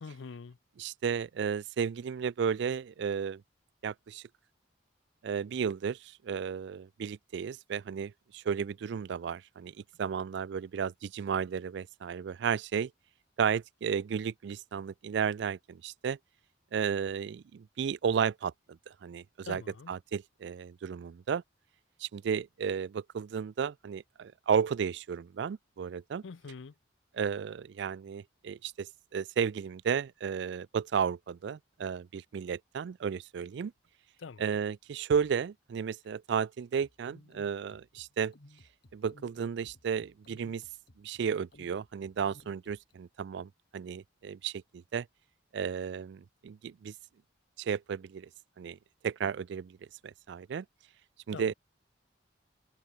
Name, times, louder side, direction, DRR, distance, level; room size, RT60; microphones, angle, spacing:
voice 1, 0.0-0.6 19.4-19.9 26.2-26.7 34.2-34.4 51.3-51.5, left 4 dB, 75° left, 0.5 m, -44 dB
voice 2, 0.8-3.4 3.8-4.2 5.2-12.9 13.4-16.2 16.7-21.4 22.0-26.2 27.1-33.7 34.4-38.3 38.9-40.6 41.0-45.1 45.5-46.9 47.6-48.3 48.6-48.8 49.0-49.8 50.0-50.7 51.3-51.5, right 7 dB, 60° right, 0.3 m, -33 dB
sound 1, 36.8-43.0, left 1 dB, 55° left, 1.7 m, -59 dB
open air
head